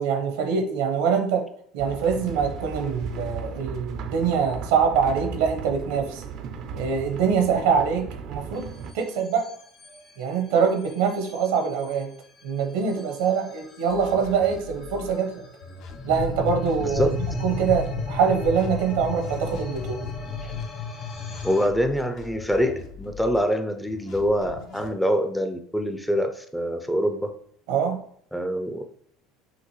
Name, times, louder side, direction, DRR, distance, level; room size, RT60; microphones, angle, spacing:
voice 1, 0.0-1.4 1.7-6.2 6.7-8.7 8.9-9.5 10.2-12.1 12.4-15.4 16.0-17.1 17.4-20.0 27.7-28.0, right 6 dB, 85° right, 4 dB, 0.8 m, -24 dB
sound 1, 1.8-8.9, right 5 dB, 60° right, 0.4 m, -36 dB
sound 2, 8.6-21.7, left 4 dB, 40° left, 1.1 m, -35 dB
sound 3, 13.9-15.1 15.6-17.9 18.4-20.6 21.1-23.4 23.9-24.9, left 5 dB, 60° left, 0.6 m, -43 dB
voice 2, 16.8-17.2 20.4-20.5 21.4-27.3 28.3-28.9, equal, 5° left, 6 dB, 0.4 m, -25 dB
5.8 x 2.6 x 3.1 m, 0.64 s
supercardioid pair, 110°, 0 cm